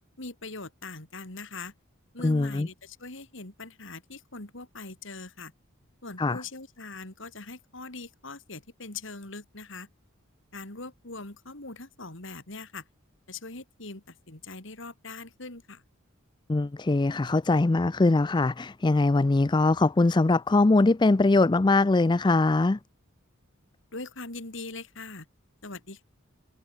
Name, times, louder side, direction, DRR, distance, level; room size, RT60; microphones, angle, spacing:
voice 1, 0.2-1.7 2.1-5.5 6.0-9.9 10.5-12.9 13.3-15.8 23.9-25.3 25.6-26.0, left 3 dB, 60° left, 3.5 m, -41 dB
voice 2, 2.2-2.7 6.2-6.4 16.5-22.8, left 2 dB, 20° left, 0.4 m, -22 dB
head